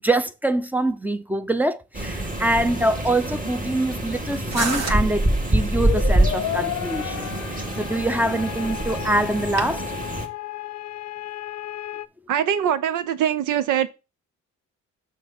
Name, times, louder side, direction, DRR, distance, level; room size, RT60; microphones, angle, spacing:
voice 1, 0.0-9.8, right 1 dB, 5° right, 0.6 m, -24 dB
sound 1, 1.9-10.3, right 1 dB, 25° right, 2.1 m, -26 dB
sound 2, 4.5-9.7, right 3 dB, 60° right, 1.7 m, -34 dB
sound 3, 5.6-12.1, left 12 dB, 60° left, 0.5 m, -33 dB
voice 2, 12.3-13.9, right 9 dB, 85° right, 0.9 m, -22 dB
6.2 x 5.9 x 4.3 m
cardioid pair, 90°, 30 cm